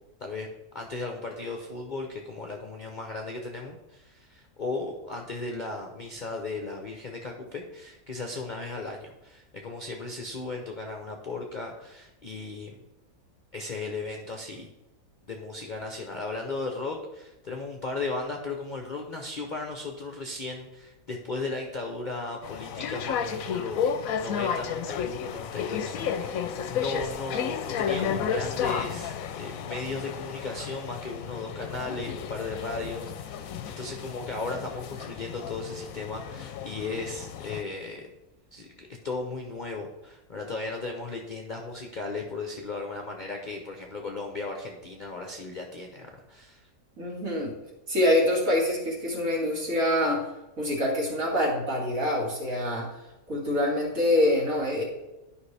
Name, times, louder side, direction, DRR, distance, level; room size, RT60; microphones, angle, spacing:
voice 1, 0.7-12.8 13.5-14.7 15.3-23.9 24.2-38.1 38.5-46.7, left 3 dB, 45° left, 2 dB, 0.6 m, -36 dB
sound 1, 22.4-37.6, left 7 dB, 70° left, 1.0 m, -32 dB
voice 2, 47.0-47.5 47.9-50.2 50.6-52.9 53.3-54.8, left 1 dB, 60° right, -3 dB, 2.6 m, -25 dB
11.0 x 5.4 x 3.3 m, 0.98 s
omnidirectional pair, 1.6 m